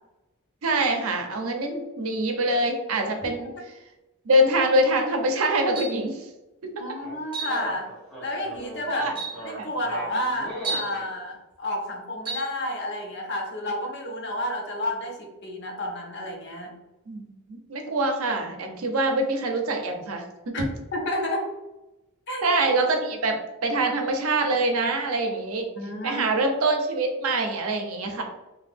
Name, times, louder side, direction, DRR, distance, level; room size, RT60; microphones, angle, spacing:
voice 1, 0.6-3.5 4.2-6.3 6.6-6.8 8.9-9.1 9.6-9.7 17.1-20.6 22.4-25.7 26.0-28.2, right 1 dB, 80° right, 4 dB, 0.6 m, -25 dB
sound 1, 5.8-6.1 7.3-7.6 8.5-8.6 9.1-9.4 10.6-11.0 12.2-12.5, right 4 dB, 25° right, 0.5 m, -32 dB
voice 2, 6.8-7.9 8.2-9.0 9.4-16.7 20.5-20.6 20.9-21.5 22.3-22.6 25.8-26.2, left 1 dB, 55° left, 1 dB, 0.7 m, -30 dB
sound 2, 7.0-11.1, right 1 dB, 5° left, 1.1 m, -38 dB
2.8 x 2.3 x 3.4 m, 0.99 s
head